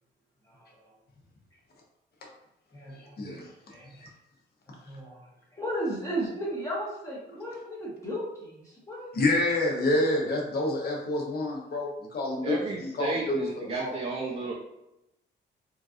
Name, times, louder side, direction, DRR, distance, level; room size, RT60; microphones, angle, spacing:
voice 1, 0.4-0.9 2.7-4.0 4.7-9.1, right 1 dB, 15° left, -6 dB, 0.9 m, -36 dB
voice 2, 9.1-12.6 13.0-13.4 13.7-13.9, left 2 dB, 50° left, -1 dB, 0.9 m, -27 dB
voice 3, 12.4-14.5, right 3 dB, 30° right, -2 dB, 0.5 m, -33 dB
3.8 x 2.5 x 2.4 m, 0.86 s
cardioid pair, 90°, 20 cm